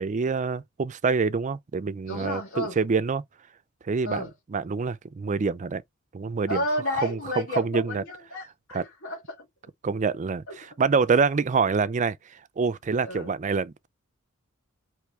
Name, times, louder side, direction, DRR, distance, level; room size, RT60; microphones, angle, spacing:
voice 1, 0.0-3.2 3.8-4.2 4.5-5.8 6.1-6.6 7.0-7.2 7.6-8.0 8.7-8.8 9.8-12.2 12.6-13.9, right 5 dB, 35° right, 0.4 m, -26 dB
voice 2, 2.1-2.8 4.0-4.3 6.5-9.5 10.5-10.6 13.0-13.3, left 1 dB, 65° left, 2.0 m, -32 dB
4.7 x 3.1 x 3.2 m
head